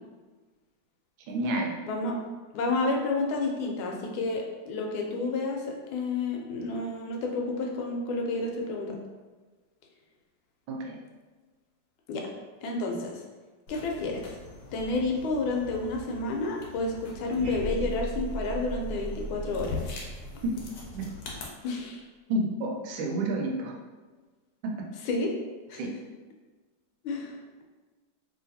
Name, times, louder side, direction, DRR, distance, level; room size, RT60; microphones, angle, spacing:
voice 1, 1.3-1.7 10.7-11.0 20.4-20.6 20.9-21.1 22.3-23.7 24.6-24.9 25.8-25.9, right 2 dB, 80° right, 0 dB, 1.4 m, -30 dB
voice 2, 1.8-2.2 2.5-5.7 5.9-9.0 12.1-12.2 12.6-13.2 13.7-14.3 14.7-19.8 21.6-22.0 25.1-25.3 25.7-25.8 27.0-27.4, left 3 dB, 85° left, 0 dB, 1.4 m, -30 dB
sound 1, 13.7-21.5, left 3 dB, 70° left, 1.1 m, -43 dB
sound 2, 17.4-21.5, right 2 dB, 60° right, 1.1 m, -37 dB
3.1 x 2.8 x 2.6 m, 1.3 s
omnidirectional pair, 2.2 m